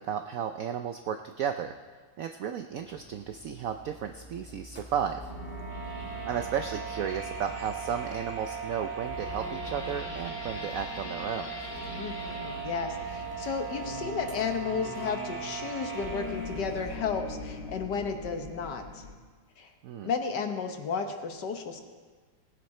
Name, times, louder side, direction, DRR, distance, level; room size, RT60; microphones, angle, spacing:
voice 1, 0.0-1.8 2.2-5.3 6.2-11.5 19.8-20.1, right 8 dB, 80° right, 7 dB, 0.7 m, -33 dB
sound 1, 2.8-17.0, equal, 5° right, 1.4 m, -50 dB
sound 2, 5.2-19.1, right 3 dB, 35° left, 2.3 m, -38 dB
voice 2, 12.0-19.0 19.6-19.7 20.0-21.8, left 5 dB, 65° left, 6 dB, 1.6 m, -33 dB
18.5 x 9.5 x 4.3 m, 1.5 s
omnidirectional pair, 2.1 m